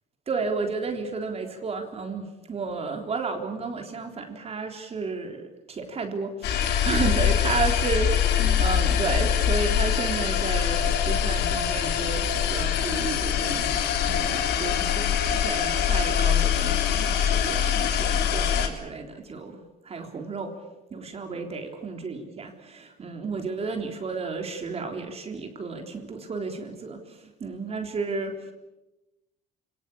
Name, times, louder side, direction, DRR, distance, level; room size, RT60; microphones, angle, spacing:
voice 1, 0.3-13.8 14.0-20.5 20.9-28.3, right 4 dB, 35° right, 4 dB, 3.7 m, -32 dB
sound 1, 6.4-18.7, left 9 dB, 75° left, 3.2 m, -24 dB
28.5 x 19.0 x 8.6 m, 1.0 s
cardioid pair, 110°, 17 cm